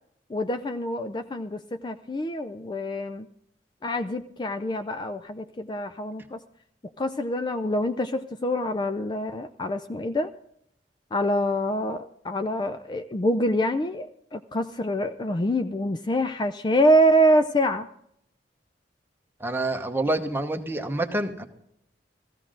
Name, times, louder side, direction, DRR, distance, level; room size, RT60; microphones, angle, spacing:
voice 1, 0.3-3.3 3.8-6.4 7.0-10.3 11.1-17.9, equal, 25° left, 9 dB, 0.4 m, -25 dB
voice 2, 19.4-21.5, right 2 dB, 10° right, 5 dB, 1.0 m, -27 dB
16.0 x 14.5 x 3.8 m, 0.73 s
head